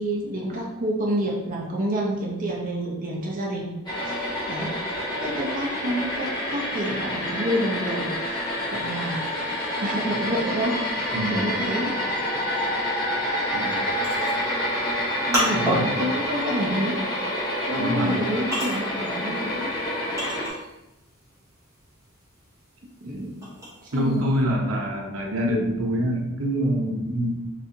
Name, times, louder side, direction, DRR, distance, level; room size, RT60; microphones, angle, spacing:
voice 1, 0.0-3.7 4.0-4.7 5.2-11.9 15.3-17.0 17.6-19.7 23.0-23.4 23.8-24.4, right 1 dB, 40° right, -2 dB, 0.6 m, -29 dB
sound 1, 3.9-20.5, left 1 dB, 20° left, 1.0 m, -28 dB
voice 2, 11.1-11.6 13.5-13.8 15.5-15.9 17.8-18.2 23.9-27.3, equal, 80° right, 0 dB, 0.8 m, -25 dB
sound 2, 13.6-20.9 21.3-24.2, equal, 15° right, 1.1 m, -31 dB
4.2 x 3.3 x 2.7 m, 0.94 s
head